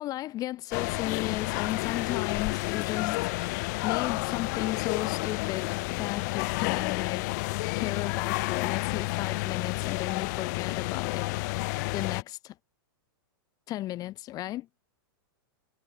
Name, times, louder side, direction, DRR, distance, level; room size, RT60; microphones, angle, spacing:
voice 1, 0.0-3.3 3.8-7.3 7.7-11.3 11.9-12.5 13.7-14.7, left 15 dB, 30° left, 4.1 m, -35 dB
sound 1, 0.7-12.2, left 26 dB, 45° left, 1.3 m, -30 dB
hypercardioid pair, 145°, 13 cm